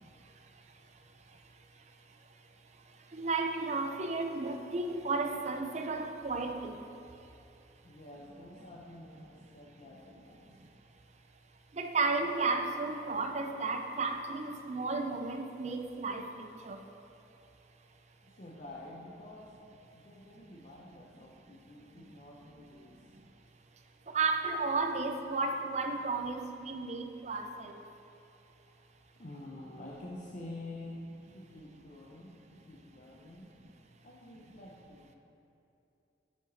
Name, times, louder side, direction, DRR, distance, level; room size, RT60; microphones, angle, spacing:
voice 1, 3.1-6.8 11.8-16.8 24.1-27.7, right 3 dB, 40° right, 5 dB, 0.5 m, -33 dB
voice 2, 7.8-10.5 18.3-19.5 19.9-23.1 28.6-28.7 29.2-31.0 31.3-33.5 34.0-35.1, left 1 dB, 40° left, -4 dB, 0.6 m, -48 dB
7.1 x 6.6 x 4.0 m, 2.8 s
head